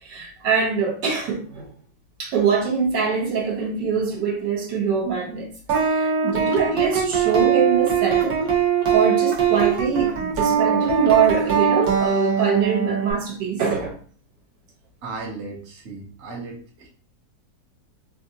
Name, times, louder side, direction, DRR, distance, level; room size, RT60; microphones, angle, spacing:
voice 1, 0.0-1.7 2.2-5.5 5.8-8.6 8.9-14.0, right 6 dB, 90° right, 1.6 m, -23 dB
sound 1, 5.7-13.1, right 7 dB, 65° right, 1.3 m, -21 dB
voice 2, 15.0-16.9, right 3 dB, 45° right, 1.0 m, -35 dB
3.2 x 2.6 x 2.7 m
omnidirectional pair, 1.8 m